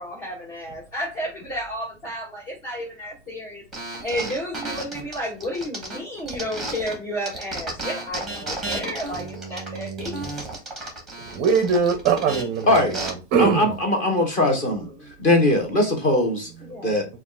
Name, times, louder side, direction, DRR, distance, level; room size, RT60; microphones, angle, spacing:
voice 1, 0.0-3.6 4.0-10.2 14.6-14.7 16.7-16.9, equal, 35° left, 2.0 m, -32 dB
sound 1, 3.7-7.0 7.3-13.1, right 2 dB, ahead, 1.2 m, -33 dB
voice 2, 9.1-10.3 11.2-13.7, right 6 dB, 25° right, 0.5 m, -23 dB
voice 3, 12.7-13.0 13.4-14.9 15.2-16.5 16.8-17.1, left 1 dB, 20° left, 0.9 m, -20 dB
6.8 x 2.4 x 2.3 m
hypercardioid pair, 145°, 37 cm